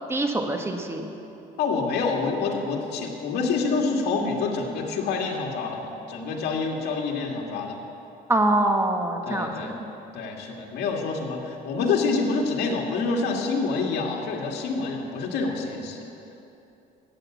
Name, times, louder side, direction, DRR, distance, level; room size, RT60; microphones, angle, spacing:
voice 1, 0.1-1.1 8.3-9.8, right 1 dB, 15° right, 4 dB, 1.2 m, -24 dB
voice 2, 1.6-7.8 9.2-9.7 10.1-16.0, left 4 dB, 75° left, 0 dB, 2.2 m, -27 dB
14.0 x 8.9 x 7.4 m, 2.9 s
cardioid pair, 110°, 17 cm